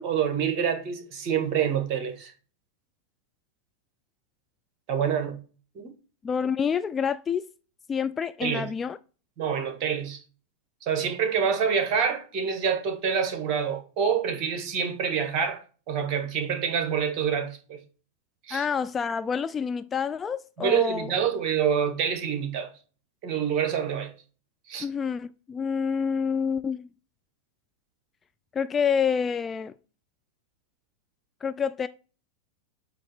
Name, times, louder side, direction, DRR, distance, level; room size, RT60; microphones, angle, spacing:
voice 1, 0.0-2.3 4.9-5.4 5.7-5.9 8.4-8.6 9.4-10.2 10.8-17.8 18.5-18.6 20.6-22.7 23.2-24.1 24.7-24.8, right 7 dB, 40° right, 1.8 m, -27 dB
voice 2, 6.2-7.5 7.9-9.0 18.5-21.1 24.8-26.9 28.5-29.7 31.4-31.9, left 6 dB, 20° left, 0.3 m, -28 dB
8.6 x 3.0 x 5.8 m
figure-of-eight pair, 90°, 0 cm